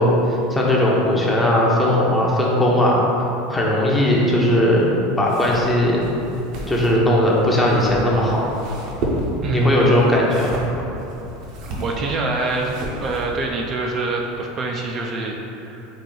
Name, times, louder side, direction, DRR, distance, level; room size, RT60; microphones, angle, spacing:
voice 1, 0.0-3.0 3.5-4.9 5.2-6.1 6.7-8.5 9.5-10.6, left 1 dB, 15° left, -4 dB, 0.8 m, -18 dB
sound 1, 5.2-13.5, right 1 dB, 60° right, 0.7 m, -32 dB
voice 2, 9.4-10.1 11.7-12.7 13.0-15.9, right 3 dB, 40° right, 0 dB, 0.4 m, -25 dB
4.1 x 2.5 x 3.8 m, 3.0 s
hypercardioid pair, 85°, 0 cm